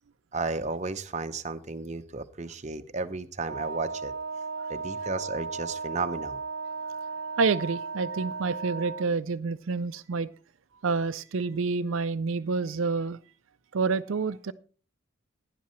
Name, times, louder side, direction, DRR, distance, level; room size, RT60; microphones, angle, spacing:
voice 1, 0.3-4.1 4.7-6.4, right 3 dB, 35° right, 9 dB, 0.7 m, -33 dB
Wind instrument woodwind instrument, 3.4-9.2, right 4 dB, 85° right, 0.8 m, -35 dB
voice 2, 7.4-10.3 10.8-13.2 13.7-14.5, right 4 dB, 70° right, 11 dB, 0.5 m, -28 dB
16.0 x 10.5 x 3.1 m, 0.38 s
head